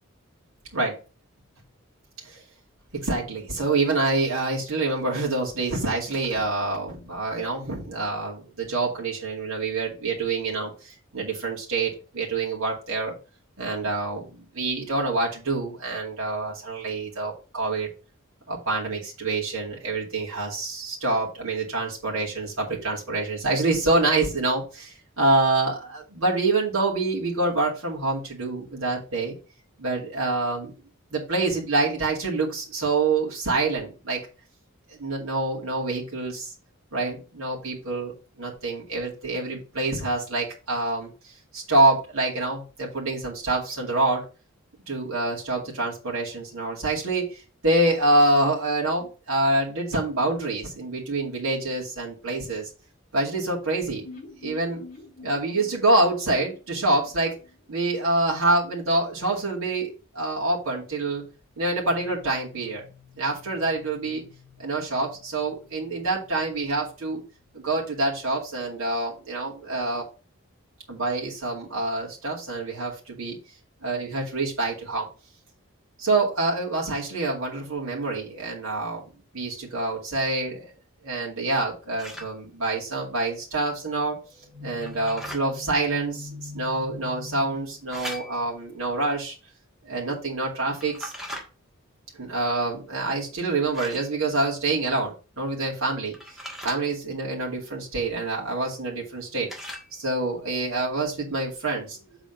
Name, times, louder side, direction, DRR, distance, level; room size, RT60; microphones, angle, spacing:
voice 1, 2.9-13.1 13.6-17.9 18.5-29.3 29.8-30.7 31.1-34.2 35.0-36.5 36.9-38.1 38.4-44.2 44.9-52.7 53.1-54.0 54.4-54.8 55.2-57.4 57.7-61.2 61.6-67.2 67.5-70.0 70.9-73.4 73.8-75.1 76.0-79.0 79.3-80.7 81.0-89.4 89.8-91.1 92.2-96.1 96.6-99.5 99.9-102.0, right 2 dB, 80° right, -4 dB, 2.3 m, -26 dB
sound 1, 54.0-57.9 58.2-58.3 58.6-58.7, left 3 dB, 40° left, 4.3 m, -46 dB
sound 2, 82.0-82.3 84.8-85.4 87.9-88.6 90.8-91.4 93.7-94.1 96.1-96.8 99.5-99.9, equal, ahead, 1.5 m, -38 dB
7.5 x 4.1 x 5.2 m, 0.33 s
head